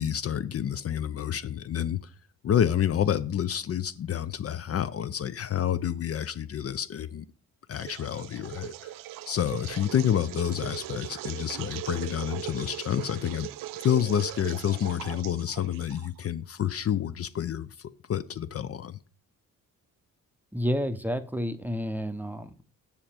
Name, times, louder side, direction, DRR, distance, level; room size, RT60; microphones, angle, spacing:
voice 1, 0.0-2.1 2.4-7.3 7.7-8.9 9.3-13.5 13.8-19.0, left 9 dB, 45° left, 0.5 m, -29 dB
sound 1, 7.7-16.3, right 13 dB, 80° right, 0.5 m, -39 dB
voice 2, 20.5-22.6, equal, 5° right, 0.6 m, -30 dB
7.2 x 6.5 x 4.4 m
cardioid pair, 105°, 33 cm